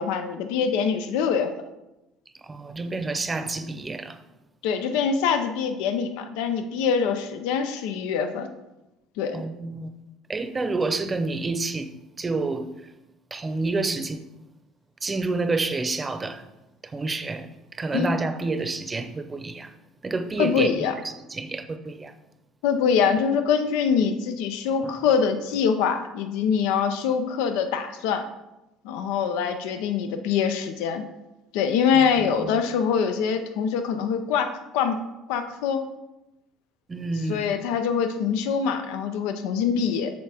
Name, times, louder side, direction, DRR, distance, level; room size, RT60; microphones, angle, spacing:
voice 1, 0.0-1.5 4.6-8.5 9.2-9.4 17.9-18.1 20.4-20.9 22.6-28.3 28.8-31.0 31.5-35.0 35.3-35.8 37.3-40.1, left 6 dB, 85° left, 0.7 m, -24 dB
voice 2, 2.3-4.2 9.3-9.9 10.3-12.9 13.3-14.2 15.0-16.5 16.8-19.8 20.0-20.9 21.3-22.2 24.8-25.0 31.9-32.5 36.9-37.5, right 3 dB, 20° right, 0.7 m, -29 dB
7.8 x 6.7 x 3.5 m
supercardioid pair, 100°, 0 cm